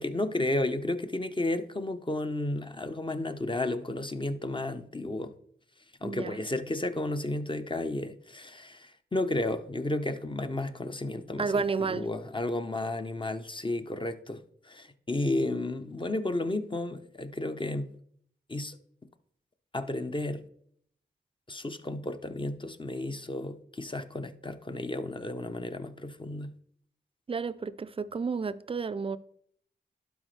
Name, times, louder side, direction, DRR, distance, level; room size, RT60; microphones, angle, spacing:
voice 1, 0.0-5.3 6.0-17.9 18.5-18.8 19.7-20.4 21.5-26.5, left 2 dB, 25° left, 0.8 m, -32 dB
voice 2, 6.0-6.4 11.4-12.1 27.3-29.2, right 5 dB, 30° right, 0.5 m, -31 dB
11.5 x 4.1 x 3.3 m
cardioid pair, 50°, 19 cm